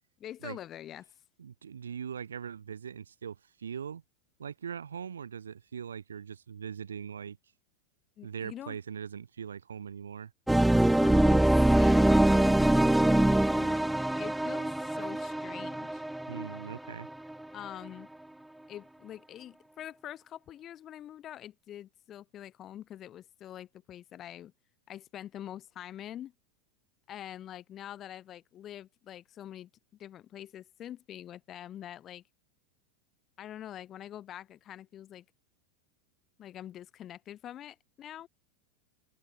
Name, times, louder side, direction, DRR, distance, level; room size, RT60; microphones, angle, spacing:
voice 1, 0.2-1.1 8.2-8.8 10.6-16.0 17.5-18.1 18.7-24.5 24.9-26.3 27.1-29.7 30.0-32.2 33.4-35.3 36.4-38.3, left 11 dB, 35° left, 2.3 m, -45 dB
voice 2, 1.4-4.0 4.4-7.4 8.2-10.3 16.3-17.1, right 7 dB, 75° right, 1.0 m, -41 dB
sound 1, 10.5-17.3, right 1 dB, 5° right, 0.5 m, -24 dB
figure-of-eight pair, 90°, 0 cm